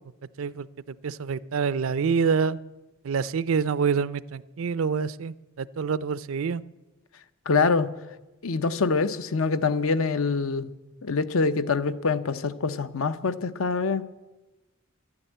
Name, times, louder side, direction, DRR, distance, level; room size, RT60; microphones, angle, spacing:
voice 1, 0.4-2.6 3.0-6.6, right 5 dB, 75° right, 18 dB, 0.5 m, -27 dB
voice 2, 7.5-7.9 8.4-10.7 11.0-14.0, left 4 dB, 80° left, 12 dB, 0.7 m, -25 dB
11.5 x 9.8 x 9.0 m, 1.1 s
head